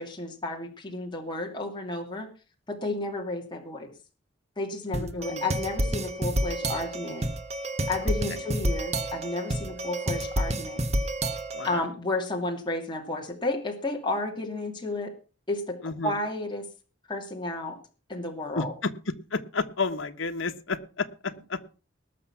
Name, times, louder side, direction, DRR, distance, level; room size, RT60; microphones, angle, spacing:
voice 1, 0.0-2.3 2.7-3.9 4.6-7.3 7.9-10.8 11.6-15.1 15.5-15.8 16.0-16.6 17.1-17.8 18.1-18.7, left 2 dB, 25° left, 1 dB, 2.5 m, -32 dB
voice 2, 4.9-5.4 11.5-11.9 15.8-16.2 18.5-21.6, left 4 dB, 80° left, 7 dB, 1.3 m, -31 dB
sound 1, 4.9-11.8, right 1 dB, 35° right, 1.2 m, -29 dB
19.5 x 6.8 x 5.9 m, 0.35 s
head